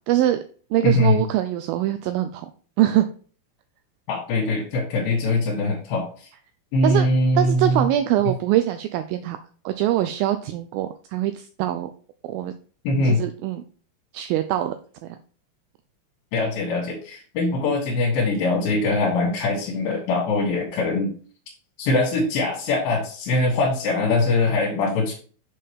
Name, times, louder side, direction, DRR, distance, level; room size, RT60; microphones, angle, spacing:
voice 1, 0.1-0.4 0.7-2.5 2.8-3.1 6.8-7.1 7.4-9.4 9.7-11.9 12.2-12.5 13.0-13.6 14.1-14.8 15.0-15.2, right 13 dB, 85° right, 9 dB, 2.1 m, -23 dB
voice 2, 0.8-1.2 4.1-6.3 6.7-7.9 8.2-8.3 12.8-13.2 16.3-21.1 21.8-25.1, left 2 dB, 70° left, -2 dB, 3.1 m, -22 dB
6.9 x 5.5 x 3.5 m, 0.42 s
omnidirectional pair, 4.7 m